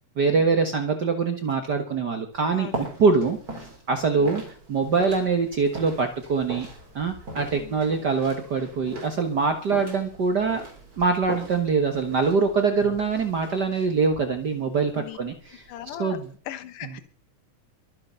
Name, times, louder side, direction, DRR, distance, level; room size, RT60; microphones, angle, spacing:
voice 1, 0.2-2.7 3.0-3.4 3.9-4.4 4.7-6.7 6.9-10.6 11.0-15.6 16.0-16.3, right 4 dB, 50° right, 6 dB, 1.2 m, -23 dB
sound 1, 2.3-16.3, right 2 dB, 30° right, 4.2 m, -41 dB
voice 2, 2.5-2.9 4.2-4.4 7.5-7.8 14.9-15.2 15.7-16.2 16.5-17.0, left 12 dB, 80° left, 11 dB, 2.6 m, -39 dB
23.0 x 7.7 x 5.7 m, 0.43 s
omnidirectional pair, 3.6 m